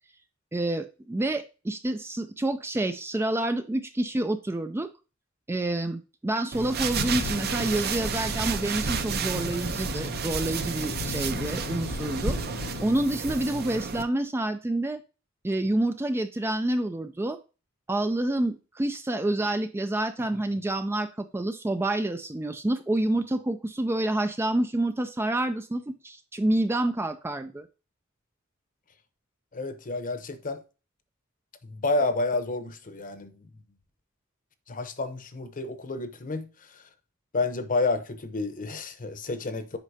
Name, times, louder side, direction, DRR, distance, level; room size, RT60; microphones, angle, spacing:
voice 1, 0.5-4.9 5.5-12.4 12.8-15.0 15.4-17.4 17.9-27.7, right 1 dB, 10° right, 0.3 m, -28 dB
sound 1, 6.5-14.0, right 5 dB, 45° right, 0.6 m, -31 dB
Thunderstorm / Rain, 6.9-12.8, left 5 dB, 65° left, 0.4 m, -38 dB
voice 2, 29.5-30.6 31.6-33.4 34.7-36.8 37.3-39.8, left 3 dB, 40° left, 0.9 m, -30 dB
8.1 x 5.4 x 2.7 m
head